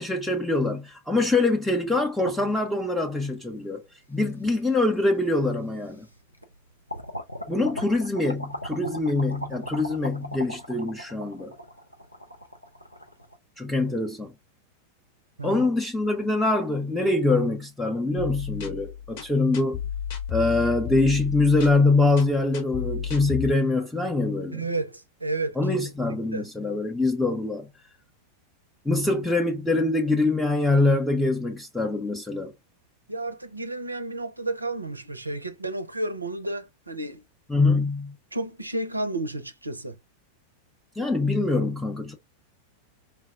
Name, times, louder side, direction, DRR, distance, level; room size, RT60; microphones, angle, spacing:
voice 1, 0.0-3.8 4.1-6.1 7.5-11.5 13.6-14.3 15.4-19.8 20.3-24.6 25.6-27.7 28.9-32.5 37.5-38.2 41.0-42.1, left 2 dB, 5° left, 0.5 m, -24 dB
sound 1, 2.2-3.4 4.2-4.3 5.5-5.6 6.0-6.5 6.9-13.4, left 1 dB, 90° left, 0.5 m, -38 dB
sound 2, 18.2-23.5, left 10 dB, 50° left, 0.9 m, -33 dB
voice 2, 24.5-25.6 26.1-26.5 33.1-37.2 38.3-40.0, right 2 dB, 85° right, 0.4 m, -32 dB
4.2 x 2.0 x 2.3 m
figure-of-eight pair, 90°, 0 cm